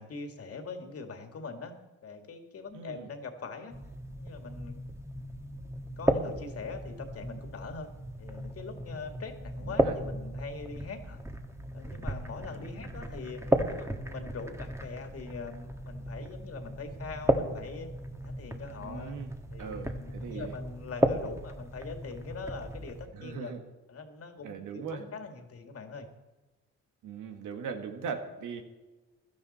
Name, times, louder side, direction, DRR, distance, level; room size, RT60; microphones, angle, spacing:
voice 1, 0.0-1.7 2.0-3.8 4.2-4.9 6.0-7.9 8.2-11.2 11.7-13.4 13.7-17.9 18.2-19.2 19.5-23.5 23.9-26.1, left 4 dB, 50° left, 5 dB, 2.2 m, -42 dB
voice 2, 2.7-3.1 9.6-9.9 12.6-12.7 18.8-19.3 19.6-20.5 23.1-23.6 24.4-25.0 27.0-28.6, right 6 dB, 85° right, 5 dB, 1.8 m, -39 dB
sound 1, 3.7-23.1, right 1 dB, 10° right, 1.4 m, -34 dB
16.5 x 12.5 x 4.3 m, 1.1 s
cardioid pair, 90°, 30 cm